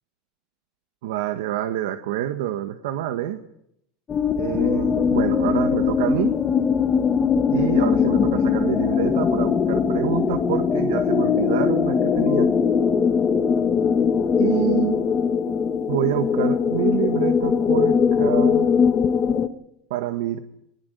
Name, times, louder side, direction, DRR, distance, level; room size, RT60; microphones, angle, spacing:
voice 1, 1.0-3.4 4.4-6.3 7.5-12.5 14.4-15.2 15.9-18.7 19.9-20.4, right 12 dB, 75° right, 7 dB, 1.8 m, -27 dB
sound 1, 4.1-19.5, left 6 dB, 20° left, 1.4 m, -21 dB
22.5 x 20.5 x 8.3 m, 0.77 s
supercardioid pair, 160°, 0 cm